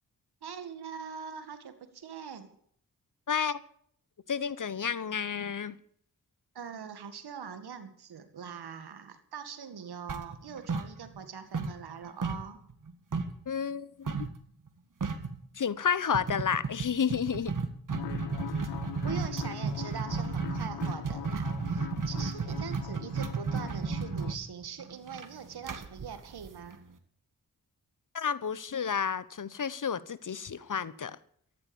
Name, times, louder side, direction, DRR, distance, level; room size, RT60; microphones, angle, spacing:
voice 1, 0.4-2.6 6.5-12.6 19.0-26.8, right 7 dB, 85° right, 2.1 m, -42 dB
voice 2, 3.3-3.6 4.3-5.8 13.5-14.3 15.5-17.5 28.1-31.2, left 7 dB, 55° left, 1.1 m, -31 dB
sound 1, 10.1-11.3 11.5-13.4 14.1-14.4 14.7-14.8 15.0-15.4 16.1-26.9, right 4 dB, 55° right, 2.0 m, -33 dB
sound 2, 17.9-24.4, left 13 dB, 85° left, 0.6 m, -42 dB
14.0 x 11.5 x 7.1 m
cardioid pair, 45°, 38 cm